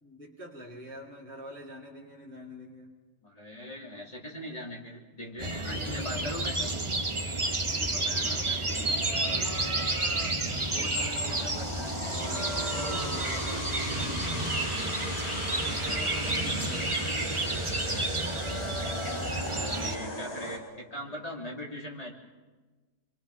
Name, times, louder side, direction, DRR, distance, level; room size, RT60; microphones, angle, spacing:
voice 1, 0.0-2.9 5.7-6.7 7.5-9.5 10.5-14.6 15.5-16.9, left 1 dB, 5° left, -5 dB, 2.7 m, -45 dB
voice 2, 3.2-6.6 10.4-11.3 16.1-16.5 19.6-22.1, left 1 dB, 25° left, -2 dB, 3.5 m, -40 dB
sound 1, 5.4-20.0, right 2 dB, 20° right, 1.0 m, -31 dB
sound 2, 10.5-20.6, equal, 65° left, 4.9 m, -37 dB
28.0 x 23.0 x 5.7 m, 1.3 s
omnidirectional pair, 1.6 m